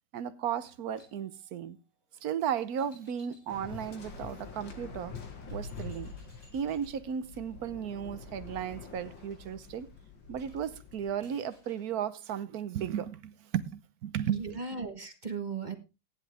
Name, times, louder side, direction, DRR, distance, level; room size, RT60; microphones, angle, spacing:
voice 1, 0.1-1.8 2.2-5.1 5.5-6.1 6.5-9.9 10.3-14.6, right 9 dB, 60° right, 1.2 m, -35 dB
sound 1, 0.6-4.4 5.0-5.1 5.4-11.9, equal, 45° left, 8.1 m, -64 dB
Waves surf, 3.5-11.1, left 4 dB, 80° left, 2.5 m, -45 dB
voice 2, 14.3-15.8, right 5 dB, 25° right, 1.3 m, -37 dB
15.0 x 10.0 x 3.5 m
omnidirectional pair, 2.0 m